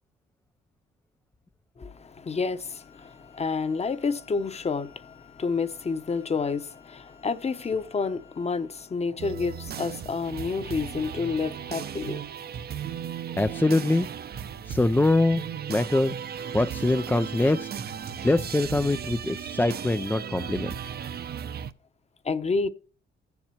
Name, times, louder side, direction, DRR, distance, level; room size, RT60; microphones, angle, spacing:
voice 1, 1.8-12.3 22.2-22.7, left 4 dB, 30° left, 1.0 m, -29 dB
Wind instrument woodwind instrument, 2.7-9.0, left 11 dB, 75° left, 3.7 m, -58 dB
sound 1, 9.2-21.7, right 8 dB, 50° right, 0.8 m, -36 dB
voice 2, 13.4-14.1 14.7-15.4 15.7-16.2 16.5-17.7 18.2-20.7, left 2 dB, 10° left, 0.4 m, -23 dB
15.0 x 7.3 x 2.9 m
cardioid pair, 90°, 20 cm